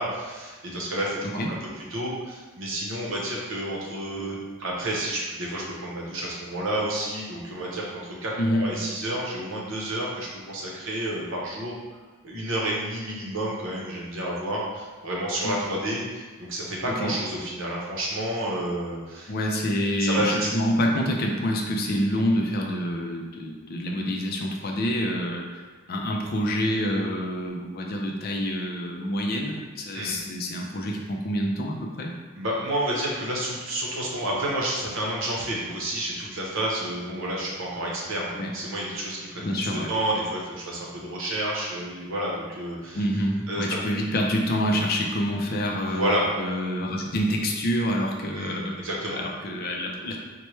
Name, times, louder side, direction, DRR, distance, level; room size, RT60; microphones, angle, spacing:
voice 1, 0.0-1.2 1.5-1.6 1.9-11.7 12.2-19.3 20.0-20.4 29.9-30.1 32.3-43.0 43.5-43.6 45.9-46.3 48.3-49.2, right 1 dB, 60° right, -3 dB, 0.8 m, -30 dB
voice 2, 1.2-1.6 8.4-8.8 15.4-15.6 16.9-17.1 19.3-25.6 25.9-32.1 38.4-38.5 39.4-39.9 42.9-48.8 49.1-50.2, equal, 45° left, 1 dB, 0.4 m, -27 dB
4.4 x 2.2 x 3.1 m, 1.4 s
head